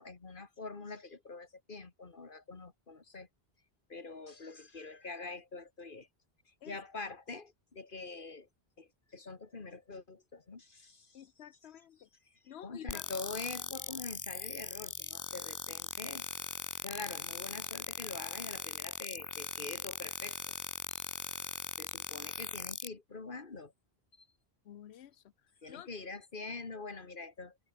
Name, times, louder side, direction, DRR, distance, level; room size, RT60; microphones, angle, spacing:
voice 1, 0.0-3.3 3.9-6.1 6.5-8.5 8.8-11.2 12.4-16.3 16.8-20.4 21.8-23.7 24.2-24.3 25.6-27.6, left 3 dB, 55° left, 1.9 m, -45 dB
voice 2, 11.1-12.1 12.4-13.1 24.6-25.2 25.7-25.9, left 10 dB, 85° left, 1.0 m, -50 dB
sound 1, 12.9-22.9, left 3 dB, 20° left, 0.6 m, -40 dB
omnidirectional pair, 1.1 m